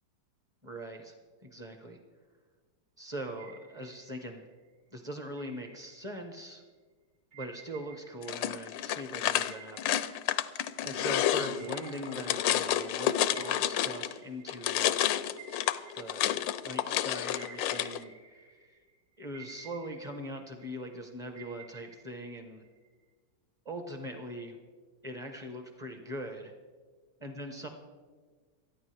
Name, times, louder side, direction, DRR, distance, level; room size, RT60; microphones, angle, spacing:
voice 1, 0.6-1.1 1.4-2.0 3.0-4.4 4.9-6.6 7.3-9.9 10.8-15.0 15.9-18.7 19.2-22.6 23.6-24.6 25.0-26.5 27.2-27.7, right 1 dB, 20° right, 4 dB, 1.0 m, -41 dB
sound 1, 3.4-4.7 5.4-6.5 7.3-10.9 11.4-13.0 13.3-16.9 17.4-18.9 19.3-20.9 21.3-23.0, right 6 dB, 75° right, 3.6 m, -54 dB
sound 2, 8.2-14.2 14.5-18.0, left 12 dB, 85° left, 1.3 m, -30 dB
sound 3, 10.8-14.1, right 2 dB, 55° right, 2.4 m, -51 dB
27.0 x 9.7 x 3.4 m, 1.5 s
omnidirectional pair, 2.0 m